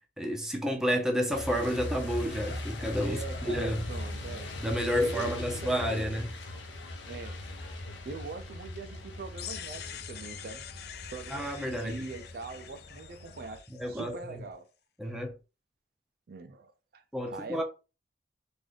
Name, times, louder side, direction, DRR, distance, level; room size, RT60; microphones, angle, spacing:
voice 1, 0.2-3.2 3.5-3.9 4.6-6.3 11.3-12.1 13.8-14.3 15.0-15.4 17.1-17.6, equal, 5° right, 0.6 m, -30 dB
Truck, 1.3-13.6, left 1 dB, 85° left, 0.8 m, -40 dB
voice 2, 3.0-4.5 4.9-6.2 7.1-7.5 8.0-10.6 11.1-14.7 16.3-17.6, right 4 dB, 55° right, 0.4 m, -42 dB
sound 1, 9.4-14.2, left 10 dB, 60° left, 0.4 m, -45 dB
3.2 x 2.5 x 3.8 m
head